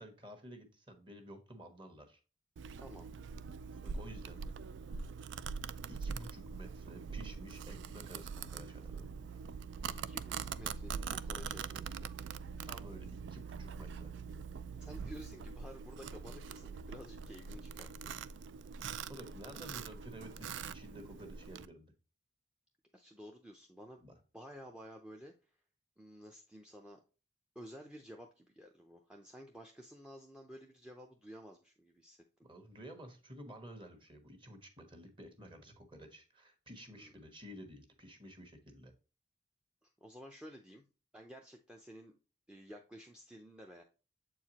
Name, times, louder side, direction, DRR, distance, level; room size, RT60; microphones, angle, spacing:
voice 1, 0.0-2.2 3.7-4.4 4.9-5.0 5.9-9.2 12.6-14.1 19.1-21.9 24.0-24.2 32.4-38.9, equal, 25° right, 5 dB, 1.2 m, -52 dB
Domestic sounds home sounds, 2.6-21.7, right 6 dB, 65° right, 0.3 m, -43 dB
voice 2, 2.8-3.1 9.8-12.1 14.8-18.1 22.9-24.0 24.3-25.5 26.0-27.0 27.6-32.2 36.9-37.1 39.8-40.8 41.1-42.1 42.5-43.8, equal, 5° right, 3 dB, 0.5 m, -53 dB
7.5 x 4.7 x 2.8 m, 0.33 s
head